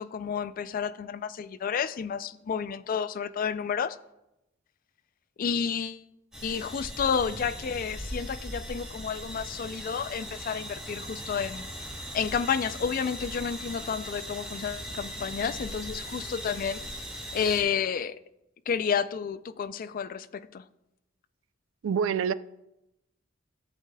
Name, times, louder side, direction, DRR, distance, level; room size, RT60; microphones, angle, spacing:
voice 1, 0.0-4.0 5.4-6.0 6.4-11.7 12.1-16.8 17.3-18.2 18.7-20.6, left 6 dB, 45° left, 0.3 m, -30 dB
sound 1, 6.3-17.6, equal, 5° right, 2.3 m, -39 dB
voice 2, 21.8-22.3, right 7 dB, 75° right, 0.3 m, -26 dB
14.0 x 8.1 x 2.3 m
head